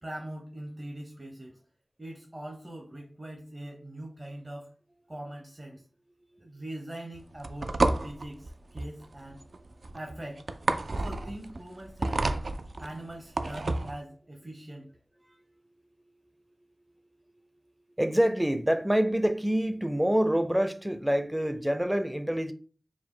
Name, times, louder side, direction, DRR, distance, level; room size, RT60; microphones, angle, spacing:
voice 1, 0.0-1.6 2.0-4.7 5.1-5.9 6.4-7.8 8.0-9.4 9.9-10.4 11.0-12.3 12.8-14.9, right 1 dB, 35° right, 0.8 m, -42 dB
sound 1, 7.1-14.0, right 2 dB, 70° right, 0.3 m, -30 dB
voice 2, 18.0-22.5, equal, 10° right, 0.5 m, -26 dB
4.8 x 2.1 x 3.7 m
wide cardioid pair, 45°, 0 cm